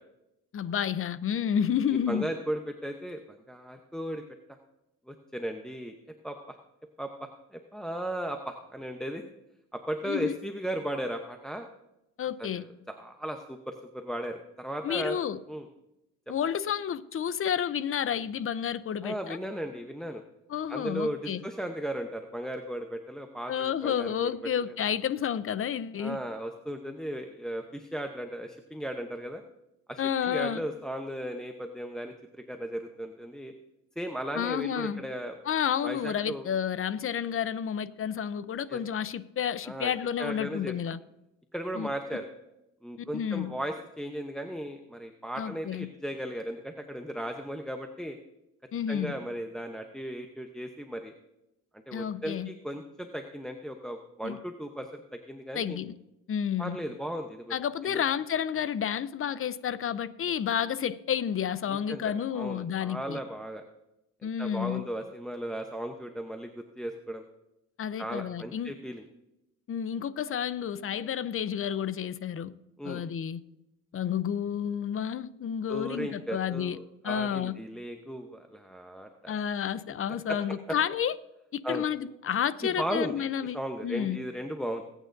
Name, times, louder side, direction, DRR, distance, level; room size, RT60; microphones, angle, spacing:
voice 1, 0.5-2.3 10.0-10.3 12.2-12.6 14.8-15.4 16.3-19.4 20.5-21.4 23.5-26.2 30.0-30.6 34.3-35.0 35.5-41.0 41.7-41.9 43.1-43.5 45.4-45.9 48.7-49.1 51.9-52.5 54.2-54.4 55.5-55.9 56.3-56.8 57.5-63.2 64.2-64.8 67.8-68.7 69.7-72.5 72.8-73.4 73.9-76.8 77.0-77.5 79.3-81.1 81.5-84.2, left 8 dB, 45° left, 0.7 m, -30 dB
voice 2, 2.1-4.2 5.1-5.9 6.2-6.6 7.0-7.1 7.5-9.2 9.7-11.7 12.4-15.2 15.5-15.7 16.3-16.4 19.0-20.2 20.7-24.3 24.7-24.8 26.0-29.4 29.9-33.5 34.0-35.3 35.8-36.4 38.7-38.8 39.6-39.9 40.2-40.7 41.5-42.3 42.8-48.2 48.9-51.1 51.9-55.8 56.6-57.5 57.9-58.0 61.7-63.6 64.2-67.2 68.0-69.0 72.8-73.0 75.7-79.3 80.3-80.6 81.6-81.8 82.6-83.2 83.5-84.8, right 1 dB, ahead, 0.8 m, -36 dB
21.5 x 9.1 x 2.6 m
cardioid pair, 90°, 30 cm